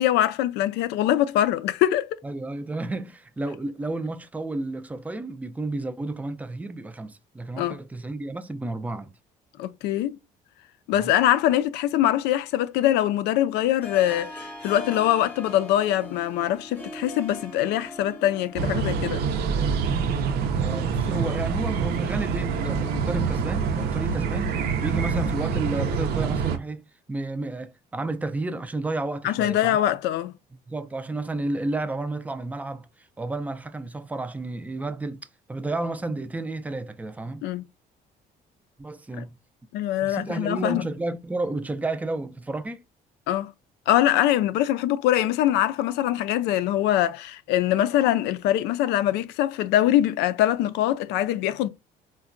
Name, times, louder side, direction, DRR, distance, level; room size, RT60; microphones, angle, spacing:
voice 1, 0.0-2.1 7.6-7.8 9.6-10.2 10.9-19.2 29.2-30.3 37.4-37.6 39.2-39.3 39.7-40.8 43.3-43.5 43.9-51.7, left 12 dB, 90° left, 0.4 m, -23 dB
voice 2, 2.2-9.1 10.9-11.1 20.5-24.5 24.8-26.8 27.1-29.8 30.7-35.2 35.5-37.5 38.8-39.4 40.0-42.8, right 2 dB, 10° right, 0.3 m, -31 dB
Harp, 13.8-19.3, left 1 dB, 10° left, 0.8 m, -41 dB
sound 1, 18.6-26.6, right 6 dB, 70° right, 0.6 m, -26 dB
3.8 x 2.1 x 2.5 m
cardioid pair, 110°, 17 cm